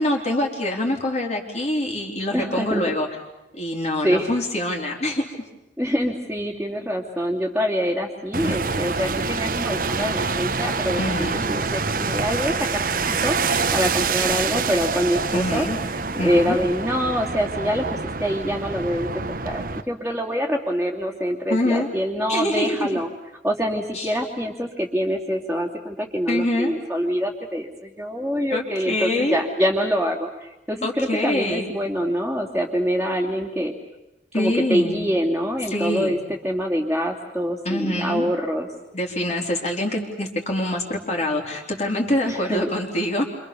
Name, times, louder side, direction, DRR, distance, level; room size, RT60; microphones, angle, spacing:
voice 1, 0.0-3.1 3.5-5.2 8.4-8.6 11.0-11.4 15.3-15.8 16.2-16.6 21.5-21.9 22.3-23.0 23.9-24.1 26.3-26.7 28.5-29.4 30.8-31.7 34.3-35.1 35.7-36.2 37.6-38.3 38.9-43.2, left 1 dB, 40° left, 1 dB, 4.2 m, -25 dB
voice 2, 2.3-2.8 4.0-4.4 5.8-15.7 16.1-19.1 19.4-23.1 23.4-33.7 34.3-38.7 42.3-42.7, equal, 5° right, -8 dB, 2.9 m, -25 dB
sound 1, 8.3-19.8, right 4 dB, 50° right, 1.3 m, -26 dB
29.0 x 26.5 x 7.1 m, 0.93 s
head